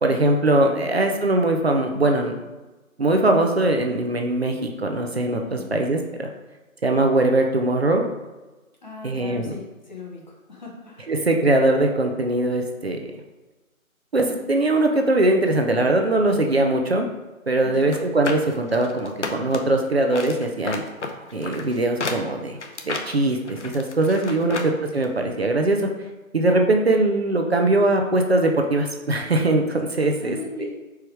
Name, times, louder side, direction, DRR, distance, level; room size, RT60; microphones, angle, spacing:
voice 1, 0.0-2.3 3.0-6.3 6.8-8.0 9.0-9.5 11.1-13.0 14.1-17.1 17.5-20.8 21.3-22.6 22.8-25.9 26.3-30.7, right 2 dB, 45° right, 3 dB, 0.7 m, -21 dB
voice 2, 5.5-5.9 8.8-11.1 17.6-18.0 30.2-30.7, left 3 dB, 35° left, -2 dB, 1.1 m, -39 dB
sound 1, 17.8-19.8 20.1-24.7 25.0-25.1, left 3 dB, 55° left, 0.9 m, -32 dB
4.8 x 4.7 x 4.7 m, 1.1 s
hypercardioid pair, 170°, 42 cm